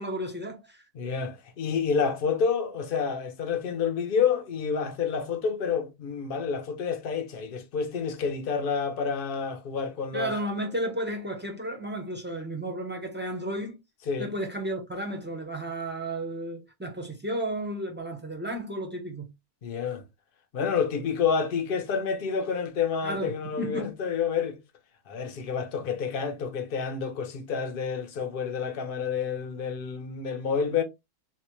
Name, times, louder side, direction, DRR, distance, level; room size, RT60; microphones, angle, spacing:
voice 1, 0.0-0.8 10.1-13.8 14.2-19.3 23.0-23.3 23.6-23.9, right 1 dB, 15° right, 0.4 m, -33 dB
voice 2, 0.9-10.3 14.1-14.3 19.6-20.0 20.5-24.6 25.1-30.8, left 6 dB, 60° left, 0.5 m, -29 dB
4.1 x 2.1 x 3.0 m
omnidirectional pair, 1.6 m